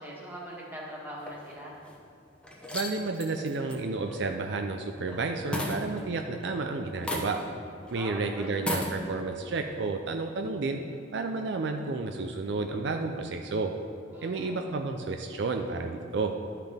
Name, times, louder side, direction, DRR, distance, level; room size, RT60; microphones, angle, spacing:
voice 1, 0.0-1.7 7.9-8.6 14.1-14.7, equal, 10° right, -5 dB, 1.5 m, -42 dB
sound 1, 1.2-1.9 2.4-5.2 5.5-6.6 7.0-7.6 7.9-8.0 8.6-9.0, left 1 dB, 5° left, 0.8 m, -35 dB
voice 2, 2.7-7.4 7.9-10.8 11.1-13.7 14.2-16.3, right 3 dB, 60° right, 4 dB, 0.4 m, -31 dB
11.5 x 5.8 x 3.5 m, 2.7 s
head